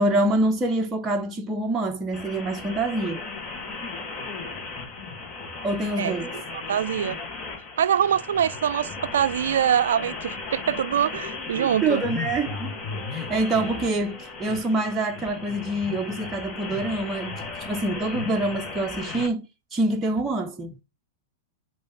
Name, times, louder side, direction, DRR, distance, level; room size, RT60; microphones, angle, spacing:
voice 1, 0.0-3.2 5.6-6.3 11.6-12.8 13.1-19.5 19.7-20.8, right 2 dB, 20° right, 0.8 m, -26 dB
sound 1, 2.1-19.3, left 4 dB, 30° left, 1.7 m, -35 dB
voice 2, 6.7-7.2 7.8-12.0, right 9 dB, 75° right, 0.3 m, -24 dB
8.2 x 3.2 x 4.4 m
hypercardioid pair, 110°, 0 cm